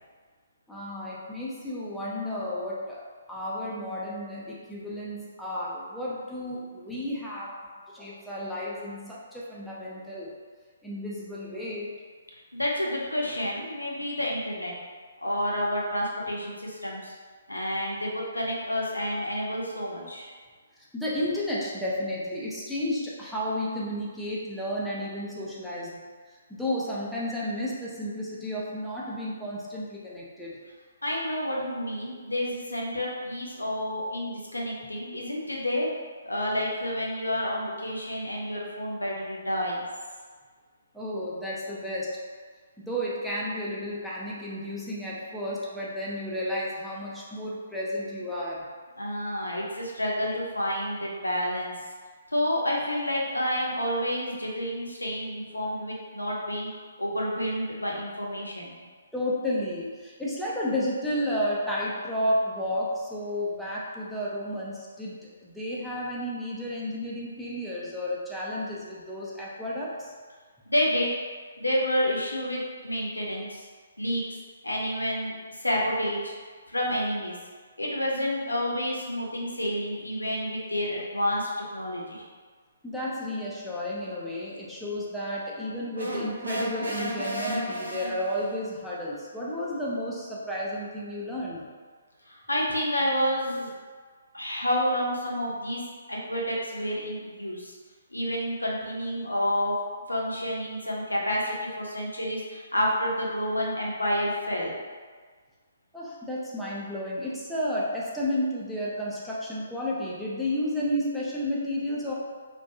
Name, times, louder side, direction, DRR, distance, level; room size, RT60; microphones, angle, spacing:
voice 1, 0.7-7.5 7.9-10.3 10.8-11.9 20.9-26.0 26.5-30.6 40.9-42.2 42.8-48.7 59.1-70.1 82.8-91.7 105.9-112.1, left 1 dB, ahead, -8 dB, 0.4 m, -32 dB
voice 2, 12.5-14.7 15.2-17.1 17.5-20.3 31.0-35.9 36.2-39.9 49.0-51.7 52.3-56.7 57.0-58.8 70.7-71.1 71.6-73.7 74.0-74.2 74.6-75.3 75.6-76.3 76.7-77.4 77.8-82.2 92.3-93.7 94.3-95.8 96.1-97.8 98.1-99.8 100.1-104.8, equal, 80° left, -3 dB, 0.5 m, -29 dB
sound 1, 86.0-88.6, equal, 80° right, 0.5 m, -33 dB
2.4 x 2.2 x 2.7 m, 1.6 s
figure-of-eight pair, 130°, 0 cm